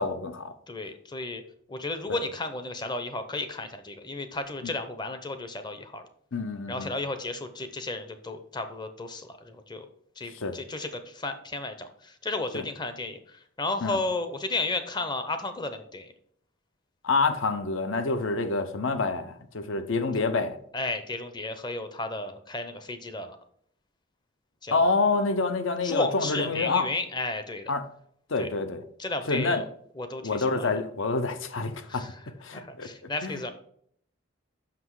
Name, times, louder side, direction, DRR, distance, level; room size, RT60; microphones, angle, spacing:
voice 1, 0.0-0.5 2.1-2.2 6.3-6.9 10.3-10.6 12.5-12.6 13.8-14.0 17.0-20.6 24.7-26.9 27.7-27.8 28.3-28.8 29.3-29.6 30.2-32.0 32.4-32.9 33.2-33.4, left 3 dB, 65° left, 10 dB, 0.7 m, -27 dB
voice 2, 0.7-1.4 1.7-6.0 6.7-9.9 10.2-16.1 20.7-23.4 24.6-25.2 25.8-27.7 28.4-28.5 29.0-29.6 30.0-30.7 31.9-32.2 32.5-33.5, left 2 dB, 20° left, 8 dB, 0.6 m, -33 dB
6.0 x 5.9 x 4.7 m, 0.65 s
head